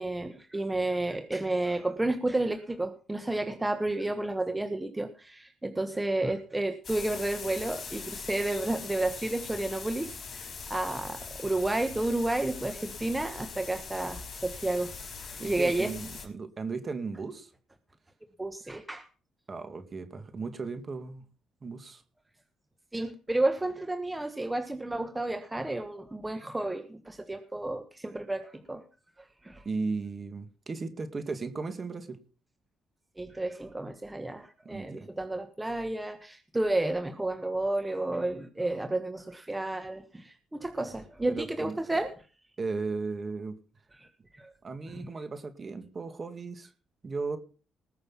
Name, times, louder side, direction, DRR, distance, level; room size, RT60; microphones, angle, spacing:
voice 1, 0.0-15.9 18.4-19.1 22.9-28.8 29.4-29.7 33.2-42.1 44.0-44.1 44.3-44.5 44.9-45.1, right 2 dB, 15° right, 7 dB, 1.3 m, -31 dB
sound 1, 6.8-16.3, left 5 dB, 45° left, 4.7 m, -42 dB
voice 2, 15.4-17.5 19.5-21.2 21.6-22.0 29.6-32.2 34.7-35.1 41.3-41.8 42.6-43.6 44.6-46.7 47.0-47.4, right 4 dB, 35° right, 9 dB, 2.4 m, -36 dB
19.5 x 6.6 x 5.8 m, 0.37 s
cardioid pair, 90°, 0 cm